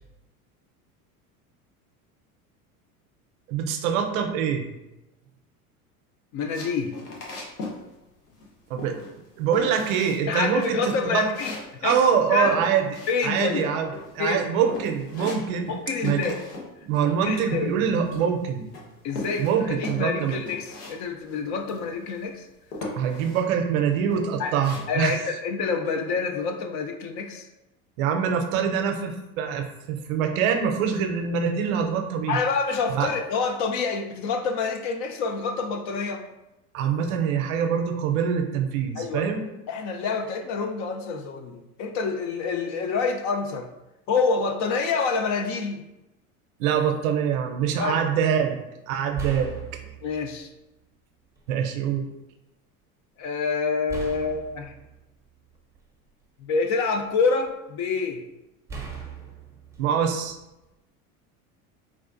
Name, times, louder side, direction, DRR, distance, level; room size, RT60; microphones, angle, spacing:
voice 1, 3.5-4.7 8.7-9.0 9.4-11.3 11.8-13.9 14.1-15.7 16.0-16.3 16.8-18.7 19.4-20.4 23.0-25.2 28.0-32.4 32.9-33.1 36.7-39.5 46.6-49.6 51.5-52.1 59.8-60.4, right 7 dB, 65° right, 5 dB, 0.6 m, -24 dB
voice 2, 6.3-7.0 10.3-12.0 12.3-12.6 13.1-13.6 14.2-14.5 15.7-16.5 17.0-17.8 19.0-22.5 24.4-24.5 24.9-27.5 32.3-36.2 38.9-39.4 39.7-43.7 44.1-45.8 47.8-48.0 50.0-50.5 53.2-54.7 56.4-58.2, left 4 dB, 40° left, 5 dB, 0.4 m, -27 dB
sound 1, 6.5-7.8 8.1-8.5 8.8-9.3 9.5-10.2 10.6-13.6 13.9-14.4 14.7-16.7 16.9-18.4 18.7-21.0 21.3-21.4 21.7-22.3 22.7-23.4 23.9-24.8, left 2 dB, 85° left, 0.9 m, -38 dB
sound 2, 48.4-48.5 49.1-50.4 51.4-51.5 53.9-56.1 56.6-57.5 58.7-60.8, right 5 dB, 5° right, 0.6 m, -39 dB
4.3 x 2.4 x 2.5 m, 0.95 s
hypercardioid pair, 85°, 45 cm